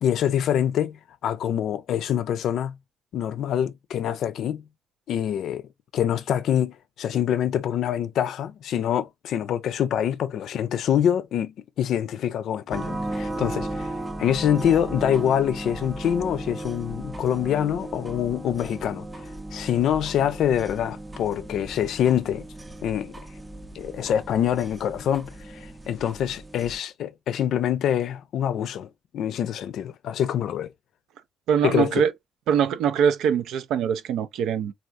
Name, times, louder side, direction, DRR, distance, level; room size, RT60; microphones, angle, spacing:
voice 1, 0.0-2.8 3.1-4.6 5.1-5.6 5.9-13.9 14.2-19.1 19.5-22.4 22.8-23.1 23.7-30.7 31.6-32.0, left 9 dB, 75° left, 0.4 m, -25 dB
sound 1, 12.7-26.8, right 1 dB, 15° right, 0.5 m, -36 dB
voice 2, 31.5-32.1 32.5-34.7, right 8 dB, 85° right, 0.4 m, -23 dB
3.5 x 2.4 x 2.5 m
cardioid pair, 90°, 0 cm